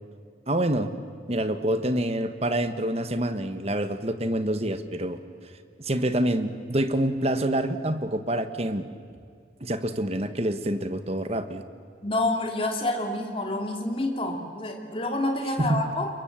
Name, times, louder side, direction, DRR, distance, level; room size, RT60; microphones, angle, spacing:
voice 1, 0.5-0.9 1.3-5.2 5.8-8.8 9.6-11.6 15.6-15.8, right 1 dB, 35° right, 9 dB, 1.4 m, -26 dB
voice 2, 12.0-16.1, left 1 dB, 30° left, 2 dB, 2.9 m, -28 dB
29.0 x 23.5 x 7.5 m, 2.3 s
head